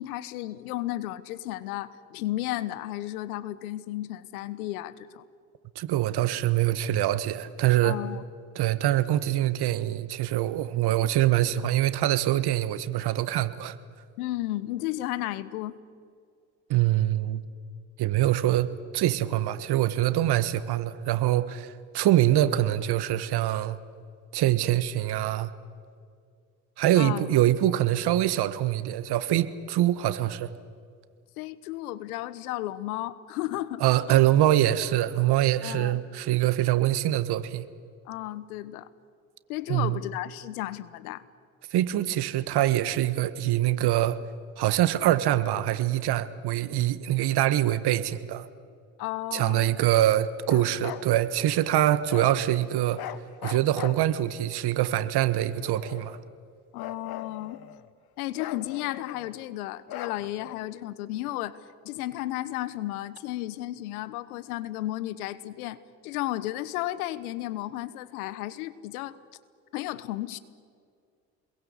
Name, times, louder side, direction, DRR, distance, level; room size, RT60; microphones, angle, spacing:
voice 1, 0.0-5.2 7.8-8.2 14.2-15.8 26.9-27.3 31.4-33.8 35.6-36.0 38.1-38.9 39.5-41.2 49.0-49.7 56.7-57.6 58.2-61.6 61.8-69.2 69.7-70.4, left 15 dB, 80° left, 16 dB, 1.2 m, -33 dB
voice 2, 5.7-8.0 8.5-13.8 16.7-17.4 18.0-23.8 24.3-25.5 26.8-30.5 33.8-37.6 39.7-40.0 41.7-44.2 44.6-48.4 49.3-53.0 53.4-56.2, right 13 dB, 60° right, 13 dB, 1.5 m, -24 dB
Bark, 50.4-51.1 52.1-52.4 52.9-54.4 55.2-56.3 56.8-57.9 58.4-59.4 59.9-60.6, left 12 dB, 55° left, 1.4 m, -40 dB
28.0 x 22.0 x 8.4 m, 2.2 s
hypercardioid pair, 55°, 43 cm